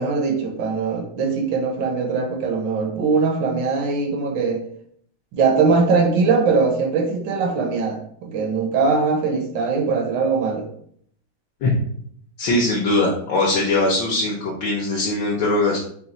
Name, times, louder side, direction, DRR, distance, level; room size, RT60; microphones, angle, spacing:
voice 1, 0.0-4.6 5.3-10.7, right 4 dB, 70° right, 3 dB, 1.3 m, -21 dB
voice 2, 12.4-15.8, left 2 dB, 70° left, -3 dB, 1.3 m, -21 dB
4.2 x 2.3 x 3.9 m, 0.65 s
omnidirectional pair, 2.3 m